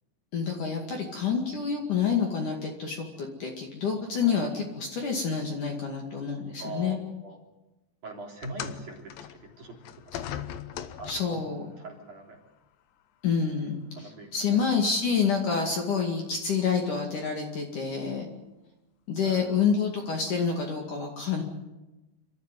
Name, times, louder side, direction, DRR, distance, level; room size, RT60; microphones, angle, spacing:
voice 1, 0.3-7.0 11.1-11.6 13.2-18.3 19.1-21.4, left 6 dB, 50° left, 1 dB, 3.2 m, -28 dB
voice 2, 4.2-4.5 6.6-7.4 8.0-10.0 11.0-11.5 11.8-12.4 13.9-14.3 19.2-19.6, right 2 dB, 45° right, 0 dB, 4.3 m, -42 dB
sound 1, 8.4-11.5 12.5-12.6 13.5-13.6, left 10 dB, 80° left, 2.1 m, -39 dB
28.0 x 14.0 x 9.8 m, 1.1 s
omnidirectional pair, 5.6 m